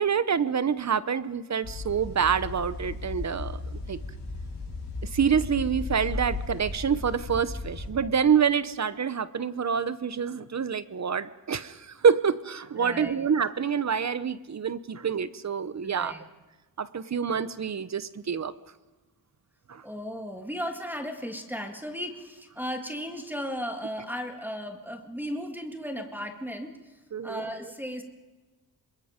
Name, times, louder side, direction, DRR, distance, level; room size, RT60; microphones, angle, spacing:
voice 1, 0.0-4.0 5.1-16.1 16.8-18.5 19.7-19.8 27.1-27.4, right 7 dB, 40° right, 15 dB, 0.9 m, -27 dB
sound 1, 1.6-7.9, left 3 dB, 75° left, 5.9 m, -36 dB
voice 2, 12.8-13.2 15.8-16.2 19.8-27.0 27.2-28.0, equal, 5° right, 3 dB, 2.1 m, -36 dB
26.0 x 21.5 x 5.1 m, 1.2 s
cardioid pair, 85°, 40 cm